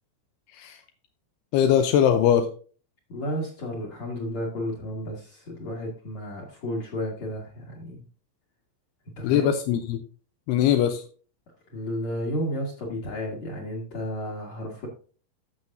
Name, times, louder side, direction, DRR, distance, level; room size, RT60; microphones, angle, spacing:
voice 1, 1.5-2.5 9.2-10.0 10.5-11.0, left 9 dB, 80° left, 6 dB, 2.4 m, -21 dB
voice 2, 3.1-8.0 9.2-9.5 11.7-14.9, equal, 50° left, -1 dB, 2.4 m, -32 dB
14.5 x 6.2 x 2.6 m, 0.39 s
omnidirectional pair, 5.5 m